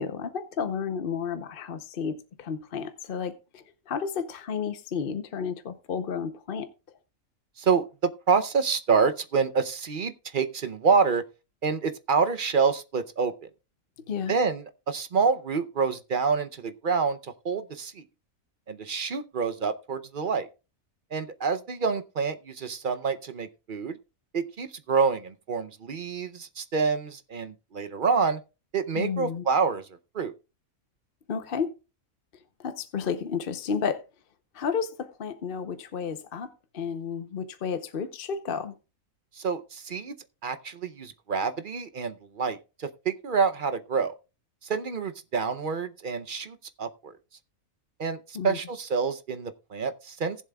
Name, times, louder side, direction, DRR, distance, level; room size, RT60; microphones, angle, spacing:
voice 1, 0.0-6.7 14.1-14.4 28.9-29.5 31.3-31.7 32.6-34.0 34.5-36.5 36.7-38.7 48.3-48.6, left 6 dB, 50° left, 0.9 m, -32 dB
voice 2, 7.6-11.2 11.6-13.3 14.3-18.0 18.7-20.5 21.1-24.0 24.3-28.4 28.7-29.9 30.1-30.3 39.4-40.1 40.4-44.1 44.6-47.1 48.0-50.4, right 5 dB, 50° right, 0.7 m, -27 dB
19.0 x 7.4 x 2.3 m
omnidirectional pair, 1.5 m